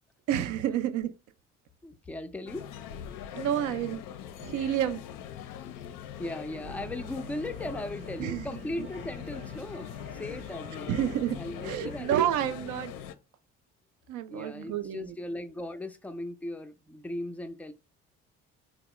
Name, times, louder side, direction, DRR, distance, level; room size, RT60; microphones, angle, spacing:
voice 1, 0.3-1.1 3.3-4.0 4.4-5.0 8.2-8.5 10.9-11.4 11.6-12.9 14.1-15.2, right 11 dB, 55° right, 0.5 m, -29 dB
voice 2, 1.8-2.7 5.6-5.8 6.2-10.9 11.4-12.6 14.3-17.7, left 1 dB, 5° left, 0.4 m, -38 dB
sound 1, 2.5-13.1, left 10 dB, 60° left, 0.5 m, -42 dB
Organ, 6.6-12.0, left 1 dB, 85° right, 1.0 m, -46 dB
3.5 x 2.1 x 3.0 m
hypercardioid pair, 50°, 37 cm